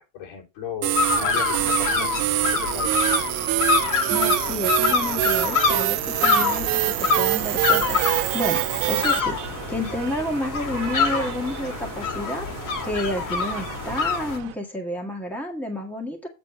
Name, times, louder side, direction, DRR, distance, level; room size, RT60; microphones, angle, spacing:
voice 1, 0.0-3.0, left 7 dB, 75° left, 0 dB, 3.8 m, -36 dB
sound 1, 0.8-9.2, right 20 dB, 80° right, 0.6 m, -24 dB
sound 2, 0.9-14.4, left 5 dB, 45° left, 2.4 m, -26 dB
voice 2, 4.1-9.4 9.7-16.3, left 1 dB, 5° left, 1 dB, 1.8 m, -30 dB
sound 3, 6.3-14.6, right 11 dB, 60° right, 1.4 m, -38 dB
8.7 x 4.1 x 6.1 m, 0.28 s
cardioid pair, 135°, 45 cm